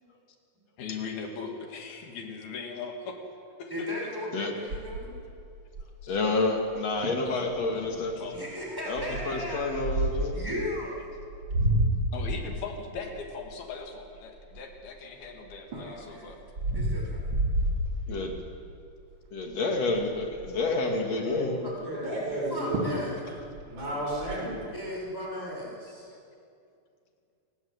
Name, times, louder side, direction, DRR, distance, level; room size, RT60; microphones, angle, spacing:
voice 1, 0.8-3.2 3.6-3.9 6.0-6.2 7.3-8.4 12.1-16.4, left 5 dB, 85° left, 2 dB, 4.6 m, -39 dB
voice 2, 3.7-5.1 8.3-9.7 10.3-11.1 15.7-16.4 16.7-17.3 21.6-22.1 22.5-23.4 24.7-26.1, left 1 dB, 5° right, -3 dB, 6.4 m, -36 dB
sound 1, 4.7-6.2 6.7-6.8 7.0-7.3 7.8-8.1 9.0-10.4 11.1-15.0 15.5-18.5 19.0-19.3 19.5-19.6 19.9-20.6 22.3-22.4 22.7-23.1 23.4-24.4, right 1 dB, 35° right, 3.4 m, -30 dB
voice 3, 6.1-8.3 8.9-10.4 18.1-18.4 19.3-21.5, left 3 dB, 50° left, 2 dB, 3.3 m, -29 dB
voice 4, 21.2-23.0 23.6-24.7, right 1 dB, 75° right, -3 dB, 8.7 m, -33 dB
28.5 x 18.5 x 8.3 m, 2.5 s
omnidirectional pair, 4.2 m